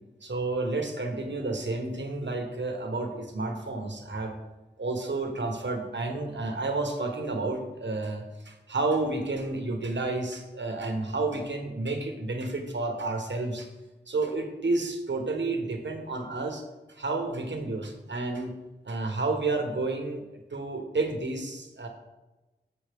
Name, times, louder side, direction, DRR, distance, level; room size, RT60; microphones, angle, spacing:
voice 1, 0.2-4.3 4.8-13.7 14.1-16.6 16.9-18.5 18.8-21.9, right 3 dB, 80° right, 4 dB, 1.2 m, -31 dB
8.0 x 6.9 x 3.5 m, 1.1 s
wide cardioid pair, 50°, 18 cm